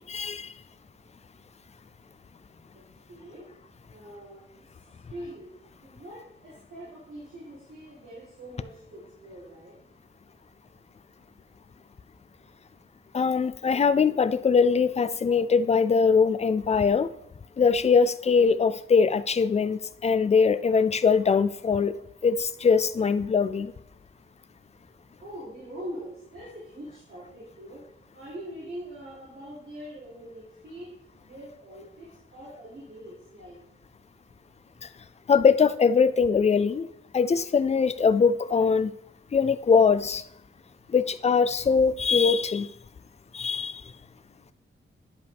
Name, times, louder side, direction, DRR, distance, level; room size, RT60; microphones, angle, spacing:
voice 1, 0.1-0.5 13.1-17.1 17.6-21.9 22.2-23.7 35.3-36.9 37.1-38.9 39.3-40.2 40.9-42.7 43.3-43.8, left 5 dB, 30° left, 13 dB, 0.4 m, -22 dB
voice 2, 3.1-3.5 3.8-4.4 5.1-5.5 5.8-9.7 25.2-27.8 28.1-30.9 31.2-33.6, equal, 75° right, -10 dB, 3.5 m, -43 dB
11.0 x 5.0 x 3.4 m, 0.77 s
wide cardioid pair, 120°, 21 cm